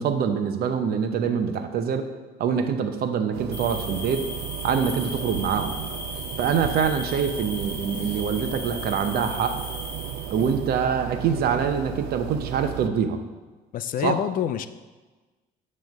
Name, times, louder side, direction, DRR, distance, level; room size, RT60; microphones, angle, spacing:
voice 1, 0.0-2.1 2.4-4.3 4.6-5.7 6.4-9.6 10.3-13.2 14.0-14.2, right 7 dB, 65° right, 7 dB, 0.7 m, -25 dB
sound 1, 3.3-12.9, right 13 dB, 90° right, 0.4 m, -35 dB
sound 2, 3.5-10.8, left 2 dB, 10° left, 2.1 m, -37 dB
voice 2, 13.7-14.7, left 10 dB, 55° left, 12 dB, 0.4 m, -26 dB
9.3 x 3.2 x 5.3 m, 1.3 s
cardioid pair, 110°, 17 cm